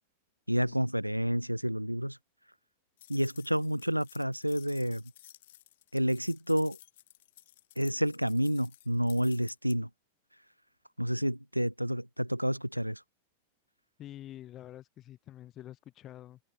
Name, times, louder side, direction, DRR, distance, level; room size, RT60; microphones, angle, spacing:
voice 1, 0.5-2.2 3.1-5.0 5.9-6.8 7.8-9.9 11.0-13.0, equal, 90° right, 3.2 m, -29 dB
sound 1, 3.0-9.8, left 14 dB, 55° left, 7.0 m, -55 dB
voice 2, 14.0-16.4, left 13 dB, 30° left, 5.9 m, -47 dB
open air
figure-of-eight pair, 90°, 0 cm